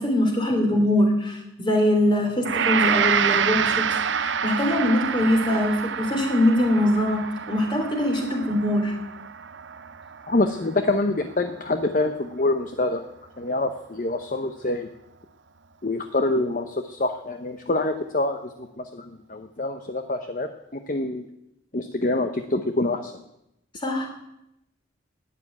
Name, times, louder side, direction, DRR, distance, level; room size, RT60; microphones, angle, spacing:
voice 1, 0.0-3.9 4.1-9.0 23.7-24.1, left 1 dB, 25° left, 3 dB, 3.1 m, -22 dB
Gong, 2.4-11.6, right 7 dB, 75° right, 0.7 m, -27 dB
voice 2, 10.3-13.0 13.4-14.9 15.8-18.4 18.9-21.2 21.7-23.1, left 2 dB, 45° left, 7 dB, 0.8 m, -26 dB
12.0 x 9.6 x 9.8 m, 0.84 s
head